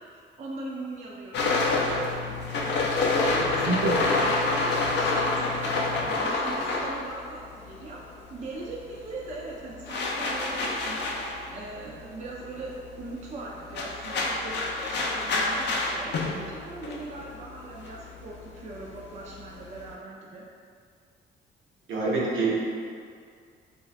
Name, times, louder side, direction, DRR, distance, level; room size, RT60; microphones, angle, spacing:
voice 1, 0.4-2.4 2.8-8.0 8.3-11.1 11.5-20.4, right 2 dB, 35° right, -3 dB, 0.4 m, -40 dB
sound 1, 1.3-8.1 8.3-19.9, left 3 dB, 60° left, 0.4 m, -28 dB
voice 2, 3.3-3.9 21.9-22.5, right 3 dB, 75° right, -7 dB, 0.9 m, -26 dB
2.4 x 2.3 x 3.2 m, 2.1 s
cardioid pair, 90°, 20 cm